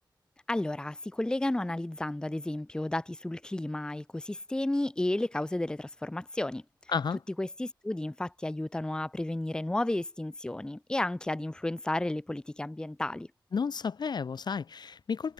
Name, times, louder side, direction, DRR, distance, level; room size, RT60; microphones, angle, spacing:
voice 1, 0.5-6.6 7.4-13.3, left 1 dB, 10° left, 0.5 m, -32 dB
voice 2, 6.9-7.2 13.5-15.3, left 5 dB, 65° left, 0.5 m, -32 dB
wide cardioid pair, 95°, 8 cm